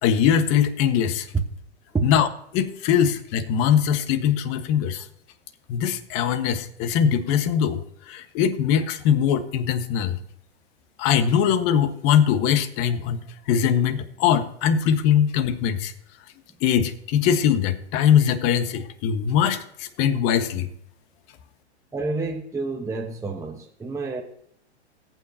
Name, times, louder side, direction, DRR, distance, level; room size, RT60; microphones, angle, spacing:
voice 1, 0.0-1.3 2.0-2.3 2.5-5.1 5.7-10.2 11.0-15.9 16.6-20.7, left 8 dB, 40° left, 10 dB, 1.4 m, -21 dB
voice 2, 21.9-24.2, right 4 dB, 10° right, 0 dB, 1.1 m, -29 dB
19.5 x 8.9 x 2.8 m, 0.70 s
hypercardioid pair, 115°, 34 cm